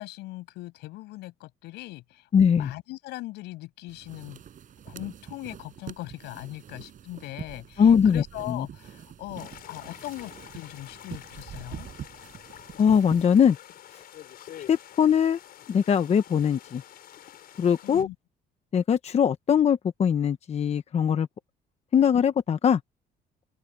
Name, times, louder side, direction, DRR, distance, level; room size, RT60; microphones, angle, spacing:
voice 1, 0.0-4.4 4.8-11.9 17.8-18.1, left 18 dB, 90° left, 6.6 m, -40 dB
voice 2, 2.3-2.7 7.8-8.7 12.8-13.6 14.7-15.4 15.7-16.8 17.6-18.1 18.7-21.3 21.9-22.8, left 7 dB, 40° left, 1.0 m, -21 dB
sound 1, 3.9-13.2, right 9 dB, 50° right, 7.6 m, -44 dB
sound 2, 9.4-18.0, left 11 dB, 65° left, 6.0 m, -47 dB
open air
cardioid pair, 110°, 17 cm